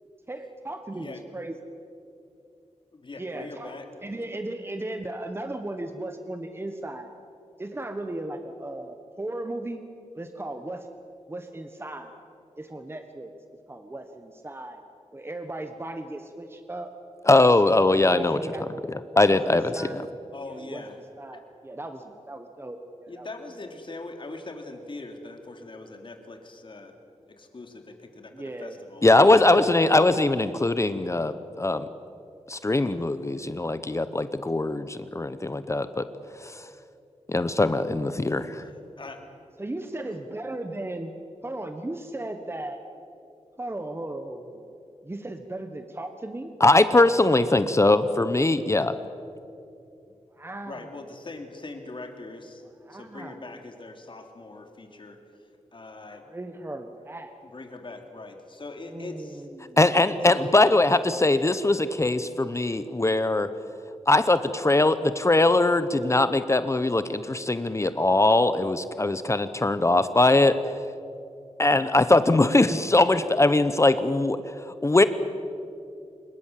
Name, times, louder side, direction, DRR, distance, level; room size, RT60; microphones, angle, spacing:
voice 1, 0.3-1.5 3.2-3.8 4.0-7.1 7.6-9.8 10.2-10.9 11.3-12.1 12.6-13.3 13.7-14.8 15.1-16.9 18.1-18.9 19.3-20.0 20.5-23.3 28.3-28.8 38.2-38.6 39.6-41.1 41.4-42.8 43.6-44.7 45.0-46.5 50.3-50.9 52.9-53.4 56.3-57.4 58.9-59.8, right 1 dB, 20° right, 7 dB, 1.4 m, -36 dB
voice 2, 2.9-3.9 20.3-21.0 23.1-27.0 27.4-29.1 29.5-30.0 38.6-39.2 40.1-40.2 50.7-52.6 52.9-55.2 55.7-56.2 57.4-59.5 60.3-60.8, left 2 dB, 45° left, 4 dB, 3.2 m, -41 dB
voice 3, 17.3-18.4 19.2-19.7 29.0-31.9 32.5-36.0 37.3-38.5 46.6-49.0 59.8-63.5 64.1-70.6 71.6-74.4 74.8-75.0, left 2 dB, 25° left, 12 dB, 0.9 m, -21 dB
25.0 x 21.5 x 7.5 m, 2.6 s
wide cardioid pair, 90°, 12 cm